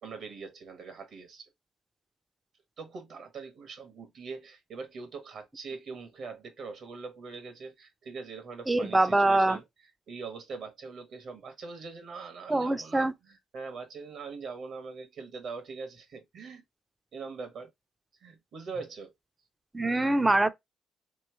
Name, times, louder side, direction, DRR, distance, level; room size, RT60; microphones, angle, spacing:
voice 1, 0.0-1.5 2.8-9.6 10.1-16.6 17.1-17.7 18.2-19.1, right 4 dB, 65° right, 1.1 m, -42 dB
voice 2, 8.7-9.6 12.5-13.1 19.7-20.5, right 2 dB, 15° right, 0.4 m, -24 dB
3.1 x 2.9 x 4.5 m
cardioid pair, 90°, 0 cm